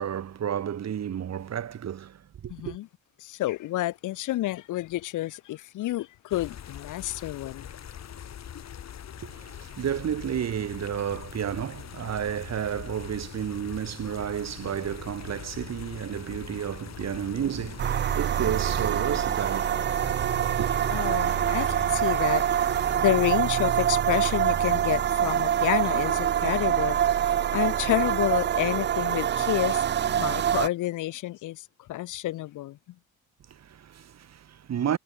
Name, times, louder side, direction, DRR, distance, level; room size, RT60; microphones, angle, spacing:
voice 1, 0.0-2.8 9.2-19.9 20.2-20.7 33.5-35.0, right 9 dB, 60° right, 5.6 m, -32 dB
voice 2, 2.5-2.9 3.2-7.7 20.9-22.4 22.9-32.8, left 16 dB, 85° left, 1.6 m, -29 dB
sound 1, 6.3-23.0, left 9 dB, 60° left, 4.6 m, -42 dB
sound 2, 17.8-30.7, right 10 dB, 35° right, 0.4 m, -25 dB
cardioid pair, 90°, 30 cm